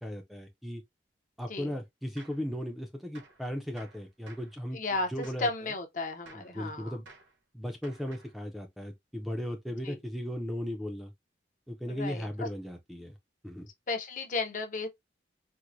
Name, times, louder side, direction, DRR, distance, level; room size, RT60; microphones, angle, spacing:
voice 1, 0.0-0.8 1.4-4.8 5.1-5.7 6.3-7.1 7.5-11.1 11.7-13.2 13.4-13.7, equal, ahead, 0.5 m, -37 dB
Gunshot gunfire, 2.2-2.5 3.1-3.4 3.8-4.6 5.2-5.5 6.2-6.6 7.1-7.4 7.8-8.4, right 3 dB, 75° right, 1.2 m, -54 dB
voice 2, 4.7-7.0 9.8-10.0 11.9-12.5 13.9-14.9, left 3 dB, 40° left, 0.6 m, -34 dB
4.5 x 2.1 x 2.5 m
head